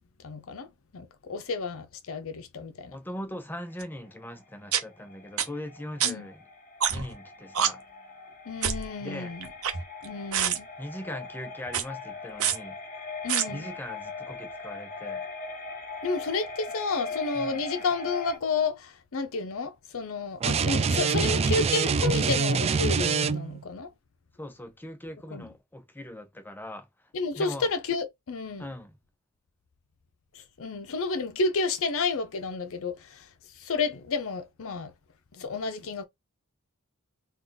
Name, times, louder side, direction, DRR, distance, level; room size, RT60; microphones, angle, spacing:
voice 1, 0.2-0.7 0.9-3.0 6.0-6.3 8.5-9.5 10.0-10.7 13.2-13.7 16.0-23.9 25.3-25.5 27.1-28.6 30.6-33.3 33.6-34.9 35.3-36.0, left 4 dB, 65° left, 0.6 m, -31 dB
voice 2, 2.9-6.5 6.9-7.9 9.0-9.3 10.8-12.8 13.5-15.2 17.3-17.6 24.4-26.9 27.4-27.7 28.6-29.0, left 1 dB, 10° left, 0.7 m, -40 dB
sound 1, 3.7-18.4, left 3 dB, 40° left, 1.1 m, -40 dB
sound 2, 3.8-3.9 4.7-4.8 5.4-5.5 6.0-6.1 6.8-7.1 7.5-7.7 8.6-8.9 9.4-10.0 10.3-10.6 11.7-11.8 12.4-12.6 13.3-13.4, right 8 dB, 70° right, 0.8 m, -25 dB
sound 3, 20.4-23.6, right 5 dB, 30° right, 0.3 m, -25 dB
3.6 x 2.4 x 3.9 m
head